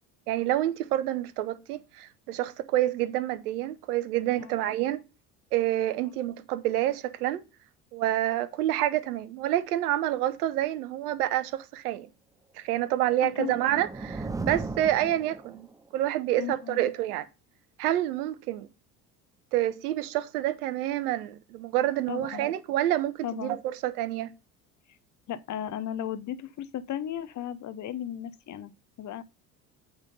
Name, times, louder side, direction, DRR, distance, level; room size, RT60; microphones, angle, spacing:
voice 1, 0.3-5.0 5.5-7.4 7.9-12.1 12.6-15.7 15.9-17.2 17.8-18.7 19.5-24.3, right 13 dB, 80° right, 0.9 m, -28 dB
sound 1, 13.2-15.9, right 3 dB, 10° right, 0.4 m, -37 dB
voice 2, 13.4-13.8 16.4-16.9 22.1-22.5 23.2-23.6 25.3-28.7 29.0-29.2, left 10 dB, 40° left, 0.8 m, -35 dB
8.8 x 3.7 x 5.3 m
hypercardioid pair, 65°, 45 cm